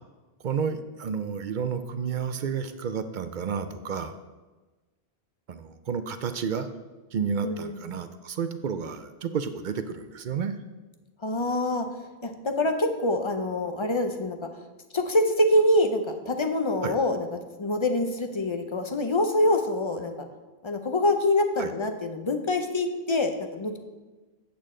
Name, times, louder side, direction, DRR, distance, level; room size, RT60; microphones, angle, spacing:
voice 1, 0.4-4.2 5.5-6.7 7.1-10.5 16.8-16.9 21.6-21.7, right 6 dB, 55° right, 10 dB, 0.6 m, -31 dB
voice 2, 7.4-7.8 11.2-11.9 12.2-14.4 14.9-17.3 17.6-20.1 20.6-23.8, left 1 dB, 35° left, 6 dB, 0.6 m, -25 dB
8.5 x 8.2 x 3.7 m, 1.2 s
omnidirectional pair, 1.1 m